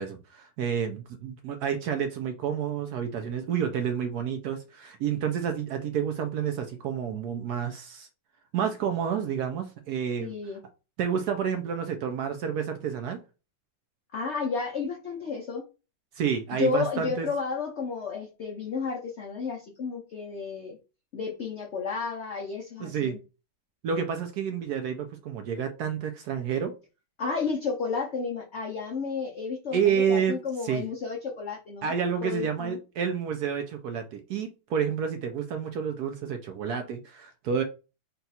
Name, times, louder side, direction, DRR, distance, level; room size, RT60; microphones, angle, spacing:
voice 1, 0.0-8.1 8.5-10.3 11.0-13.2 16.2-17.3 22.8-23.2 23.8-26.7 29.7-30.4 30.6-30.8 31.8-37.6, right 7 dB, 70° right, 1.0 m, -29 dB
voice 2, 10.2-10.6 14.1-15.6 16.5-20.8 21.1-23.2 27.2-31.9 32.2-32.8, left 5 dB, 70° left, 0.6 m, -32 dB
4.0 x 2.3 x 4.1 m
omnidirectional pair, 2.0 m